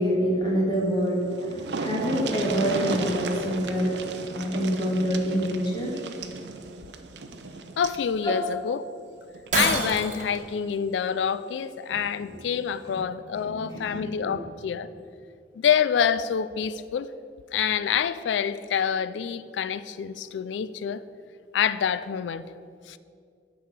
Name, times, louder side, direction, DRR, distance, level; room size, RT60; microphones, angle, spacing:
voice 1, 0.0-3.9 4.3-5.9 8.2-8.3 12.9-13.0 13.4-14.3, equal, 25° left, 1.9 m, -26 dB
sound 1, 0.9-1.0 1.2-8.0 9.3-9.5 9.9-10.0, right 3 dB, 70° right, 0.6 m, -34 dB
voice 2, 7.8-8.9 9.5-14.9 15.6-17.1 17.5-21.0 21.5-22.5 22.9-23.0, left 7 dB, 80° left, 0.3 m, -27 dB
Shatter, 9.5-10.4, right 3 dB, 45° right, 1.4 m, -26 dB
8.4 x 4.9 x 7.2 m
head